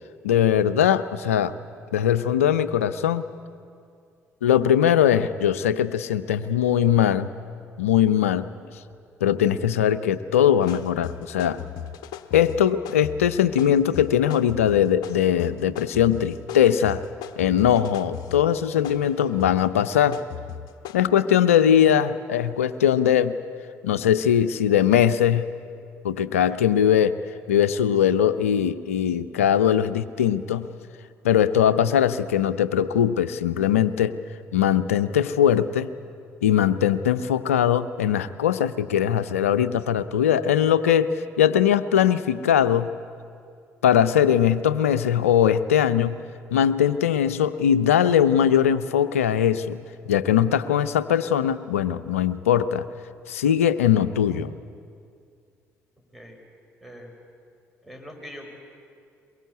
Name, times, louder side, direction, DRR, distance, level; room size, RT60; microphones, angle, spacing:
voice 1, 0.2-1.5 1.9-3.2 4.4-7.3 7.8-8.5 9.2-11.6 12.3-17.0 17.4-20.2 20.9-23.4 23.8-25.5 26.0-27.1 27.5-30.7 31.2-34.1 34.5-35.9 36.4-42.9 43.8-46.2 46.5-49.8 50.1-52.8 53.3-54.5, left 9 dB, 85° left, 14 dB, 0.6 m, -20 dB
sound 1, 10.6-21.0, left 10 dB, 65° left, 0.8 m, -38 dB
voice 2, 56.8-57.1 57.8-58.5, equal, ahead, 3 dB, 5.6 m, -42 dB
22.5 x 22.5 x 8.3 m, 2.3 s
figure-of-eight pair, 50°, 7 cm